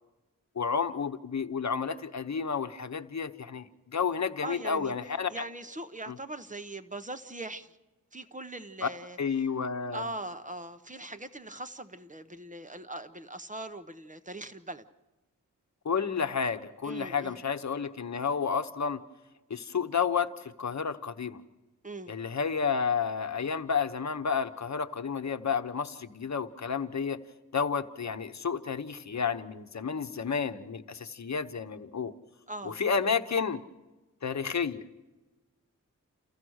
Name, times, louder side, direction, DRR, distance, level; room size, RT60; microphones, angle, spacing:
voice 1, 0.6-5.4 6.1-6.2 8.8-8.9 9.2-10.0 15.8-19.0 19.5-21.4 22.1-27.2 27.5-32.1 32.6-33.6 34.2-35.0, left 6 dB, 60° left, 10 dB, 1.0 m, -31 dB
voice 2, 4.4-4.9 5.3-7.8 8.1-9.5 9.9-14.8 16.8-17.4 21.8-22.1 32.5-32.8, right 2 dB, 25° right, 10 dB, 0.9 m, -41 dB
28.5 x 15.5 x 6.4 m, 1.1 s
wide cardioid pair, 100°, 32 cm